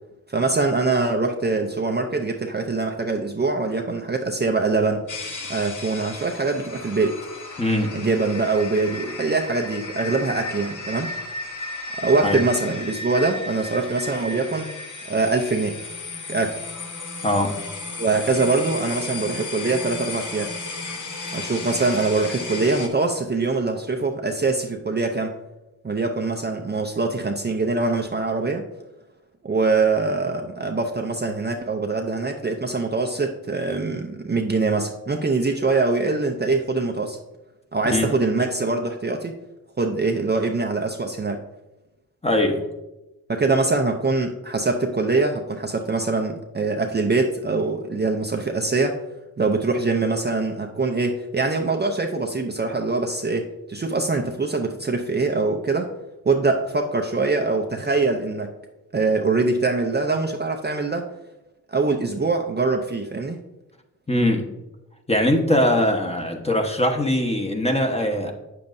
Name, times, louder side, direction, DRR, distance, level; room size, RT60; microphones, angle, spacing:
voice 1, 0.3-5.0 5.5-7.2 7.9-11.1 12.0-14.7 15.1-15.8 16.3-16.7 18.0-20.5 21.3-25.3 25.8-28.7 29.4-37.2 37.7-39.3 39.8-41.4 43.3-49.0 49.4-55.9 56.3-58.5 58.9-61.1 61.7-63.4, right 3 dB, 25° right, 3 dB, 0.6 m, -23 dB
sound 1, 5.1-22.9, left 3 dB, 50° left, 1.3 m, -34 dB
voice 2, 7.6-8.0 12.2-12.4 17.2-17.6 37.9-38.1 42.2-42.7 64.1-64.5 65.1-68.3, left 1 dB, 15° left, 2 dB, 1.2 m, -21 dB
8.4 x 7.1 x 2.6 m, 1.0 s
cardioid pair, 65°, 38 cm